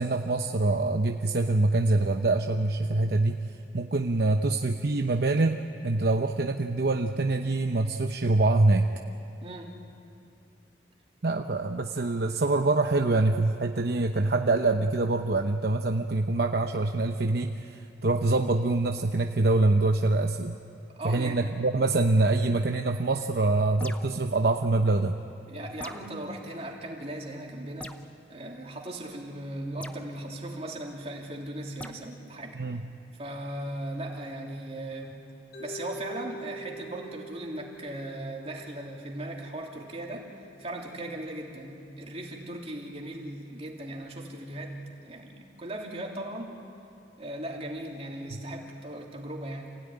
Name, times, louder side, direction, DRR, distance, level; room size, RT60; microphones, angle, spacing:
voice 1, 0.0-3.4 3.7-8.9 11.2-20.5 21.0-25.2 32.5-32.8, right 2 dB, 60° right, 5 dB, 0.8 m, -25 dB
voice 2, 9.4-9.8 21.0-21.4 25.5-28.0 28.3-32.6 33.1-35.2 35.6-40.3 40.6-46.5 47.2-49.8, right 1 dB, 35° right, -1 dB, 3.1 m, -38 dB
sound 1, 23.8-24.3 25.8-26.2 27.8-28.1 29.8-30.0 31.8-32.0, left 1 dB, 10° left, 0.7 m, -42 dB
Mallet percussion, 35.5-39.6, right 2 dB, 65° left, 5.0 m, -44 dB
28.0 x 17.0 x 10.0 m, 2.6 s
head